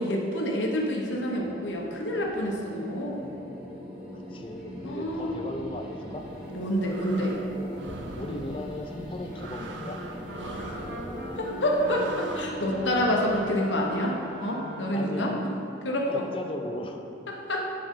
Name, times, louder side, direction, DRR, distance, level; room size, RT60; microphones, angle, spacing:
voice 1, 0.0-3.4 4.8-5.4 6.5-7.4 10.4-10.9 11.4-15.5 15.8-16.2 17.5-17.7, equal, 80° left, -1 dB, 1.1 m, -28 dB
sound 1, 0.8-15.7, equal, 5° right, 1.2 m, -42 dB
voice 2, 4.3-6.2 8.1-10.0 10.5-10.8 14.9-15.4 16.1-17.0, left 1 dB, 30° left, 3 dB, 0.5 m, -37 dB
sound 2, 6.4-12.4, right 3 dB, 75° right, 0.6 m, -43 dB
Wind instrument woodwind instrument, 9.3-15.1, equal, 60° right, 1.0 m, -42 dB
11.5 x 4.8 x 3.8 m, 3.0 s
head